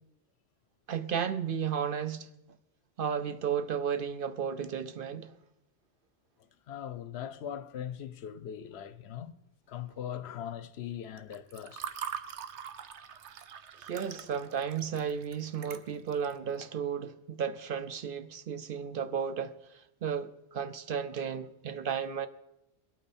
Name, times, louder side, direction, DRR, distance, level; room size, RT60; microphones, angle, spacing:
voice 1, 0.9-2.3 3.0-5.3 13.7-22.3, right 7 dB, 55° right, 0.7 m, -34 dB
voice 2, 6.7-9.3 9.7-11.9, left 9 dB, 70° left, 0.9 m, -40 dB
Water / Fill (with liquid), 11.2-16.3, right 8 dB, 80° right, 1.1 m, -42 dB
21.5 x 8.7 x 4.2 m
omnidirectional pair, 1.2 m